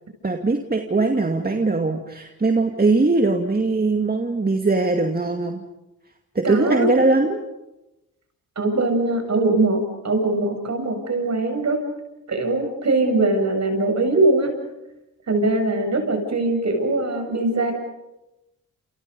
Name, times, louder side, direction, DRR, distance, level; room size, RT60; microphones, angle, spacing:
voice 1, 0.2-5.6 6.3-7.4, right 3 dB, 25° right, 4 dB, 2.3 m, -21 dB
voice 2, 6.4-6.9 8.6-11.8 12.3-14.6 15.3-17.7, right 2 dB, 45° right, 5 dB, 7.9 m, -21 dB
29.0 x 28.5 x 5.4 m, 0.96 s
cardioid pair, 65°, 36 cm